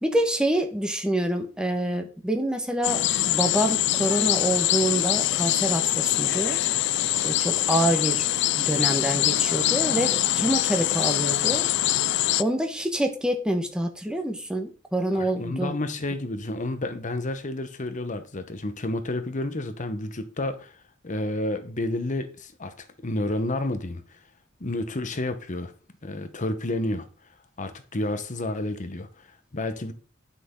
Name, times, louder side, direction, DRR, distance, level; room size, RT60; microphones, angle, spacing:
voice 1, 0.0-6.6 7.2-8.2 8.5-11.7 12.4-15.7, right 1 dB, 5° right, 1.2 m, -26 dB
sound 1, 2.8-12.4, left 14 dB, 60° left, 0.4 m, -24 dB
voice 2, 15.1-24.2 24.6-25.7 26.0-27.1 27.6-29.9, left 1 dB, 40° left, 1.1 m, -30 dB
10.5 x 6.0 x 3.8 m
head